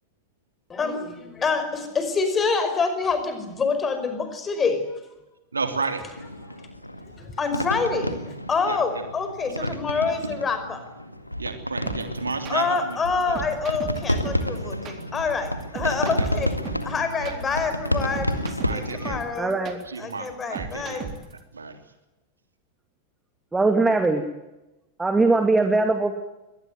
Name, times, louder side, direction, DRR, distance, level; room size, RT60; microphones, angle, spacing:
voice 1, 1.4-4.8 7.2-10.8 12.5-16.5 16.8-18.4 18.7-19.5 20.0-21.1, left 4 dB, 20° left, 9 dB, 5.3 m, -26 dB
voice 2, 5.5-6.0 8.6-9.0 9.6-9.8 11.4-13.0 13.3-13.5 15.8-16.3 17.2-17.4 18.0-18.2 18.6-19.2 19.9-21.0 21.5-21.8, right 4 dB, 75° right, 7 dB, 3.2 m, -32 dB
sound 1, 6.2-19.2, equal, 90° left, 1.9 m, -31 dB
sound 2, 11.9-21.4, right 7 dB, 30° right, 3.6 m, -36 dB
voice 3, 19.4-19.8 23.5-24.2 25.0-26.2, right 3 dB, 10° right, 7 dB, 2.3 m, -21 dB
23.0 x 19.0 x 9.2 m, 1.0 s
figure-of-eight pair, 90°, 0 cm